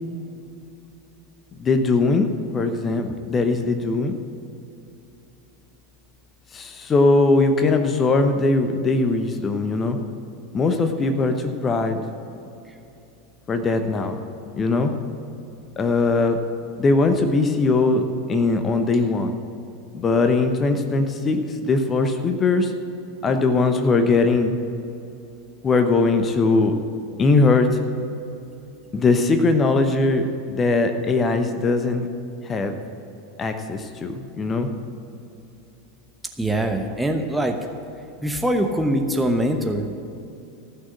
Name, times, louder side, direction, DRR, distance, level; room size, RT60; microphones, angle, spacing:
voice 1, 1.6-4.2 6.5-10.0 10.5-12.0 13.5-14.2 14.5-14.9 15.8-16.4 16.8-19.4 19.9-22.7 23.2-24.6 25.6-26.7 27.2-27.8 28.9-32.1 32.4-32.8 33.4-34.7, left 3 dB, 25° left, 7 dB, 1.0 m, -20 dB
voice 2, 36.4-37.6 38.2-39.9, right 1 dB, 5° right, 3 dB, 1.0 m, -23 dB
15.0 x 6.4 x 8.8 m, 2.8 s
figure-of-eight pair, 85°, 0 cm